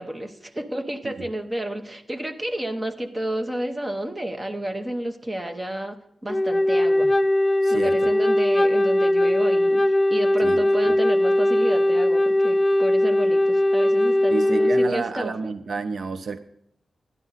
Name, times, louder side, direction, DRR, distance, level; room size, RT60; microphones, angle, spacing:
voice 1, 0.0-6.0 6.2-7.1 7.7-15.3, right 1 dB, 15° right, 5 dB, 0.9 m, -31 dB
Wind instrument woodwind instrument, 6.3-14.9, left 1 dB, 25° left, 0.4 m, -20 dB
voice 2, 7.6-8.1 10.4-10.9 14.3-16.4, right 4 dB, 60° right, 10 dB, 0.5 m, -31 dB
12.5 x 11.0 x 4.0 m, 0.76 s
wide cardioid pair, 155°, 0 cm